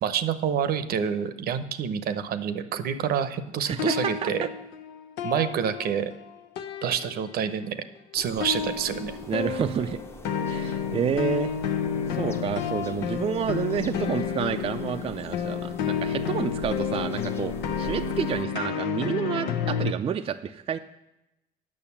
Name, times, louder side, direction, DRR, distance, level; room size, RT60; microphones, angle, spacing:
voice 1, 0.0-4.4 5.2-6.1 6.8-7.8 8.1-9.1, right 8 dB, 65° right, 11 dB, 0.8 m, -27 dB
voice 2, 3.6-4.5 9.3-10.0 10.4-11.5 12.1-20.8, right 7 dB, 35° right, 7 dB, 0.4 m, -29 dB
sound 1, 3.7-6.3 6.6-7.6 8.4-19.9, left 7 dB, 85° left, 0.8 m, -30 dB
sound 2, 8.1-18.5, left 1 dB, 15° left, 0.8 m, -44 dB
8.7 x 6.4 x 7.0 m, 0.91 s
cardioid pair, 110°, 17 cm